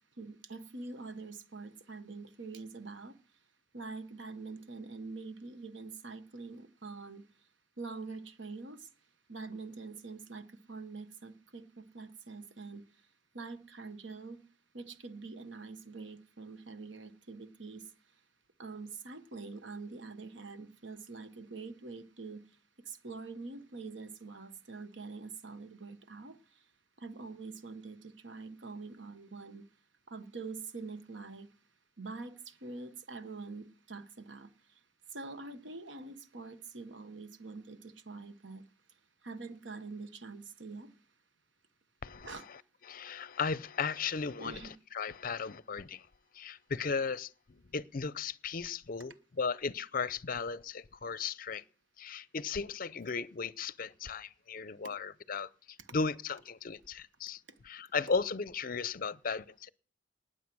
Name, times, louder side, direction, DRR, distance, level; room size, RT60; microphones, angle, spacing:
voice 1, 0.2-3.2 3.7-7.2 7.8-8.8 9.3-12.8 13.3-14.4 14.7-17.8 18.6-22.4 22.9-26.4 27.0-29.6 30.1-31.5 32.0-34.5 35.1-38.6 39.2-40.9 42.2-42.5 44.4-44.7, right 3 dB, 75° right, 1.2 m, -45 dB
voice 2, 42.0-42.6 42.9-44.6 44.9-46.1 46.3-51.6 52.0-59.7, left 5 dB, 50° left, 0.6 m, -36 dB
19.0 x 7.7 x 6.2 m
head